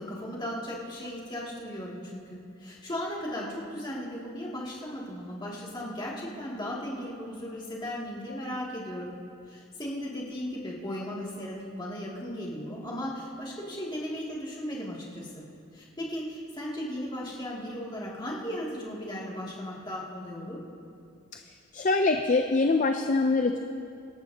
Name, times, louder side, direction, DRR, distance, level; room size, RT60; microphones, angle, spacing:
voice 1, 0.0-2.2 2.6-9.1 9.5-15.4 15.7-20.6, equal, 20° left, -5 dB, 2.4 m, -36 dB
voice 2, 21.7-23.6, left 3 dB, 40° left, 5 dB, 0.5 m, -24 dB
25.5 x 12.5 x 2.8 m, 2.4 s
head